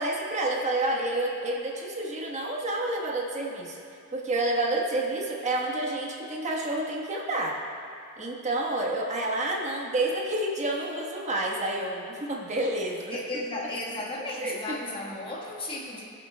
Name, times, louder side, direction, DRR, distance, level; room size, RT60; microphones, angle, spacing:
voice 1, 0.0-3.8 4.1-7.6 8.2-13.2 14.4-14.8, right 2 dB, 35° right, -2 dB, 1.2 m, -29 dB
voice 2, 13.1-16.1, left 2 dB, 25° left, -3 dB, 1.4 m, -34 dB
21.5 x 7.6 x 2.2 m, 2.6 s
head